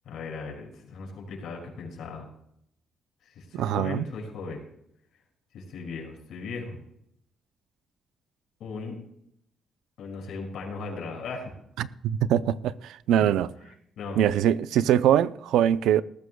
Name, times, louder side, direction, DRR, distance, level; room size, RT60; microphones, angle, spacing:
voice 1, 0.1-2.3 3.2-4.6 5.5-6.8 8.6-9.0 10.0-11.5 13.2-13.3 14.0-14.3, left 4 dB, 65° left, 5.7 m, -37 dB
voice 2, 3.5-4.1 11.8-13.5 14.2-16.0, right 10 dB, 90° right, 0.6 m, -23 dB
18.5 x 14.5 x 2.3 m
cardioid pair, 180°, 0 cm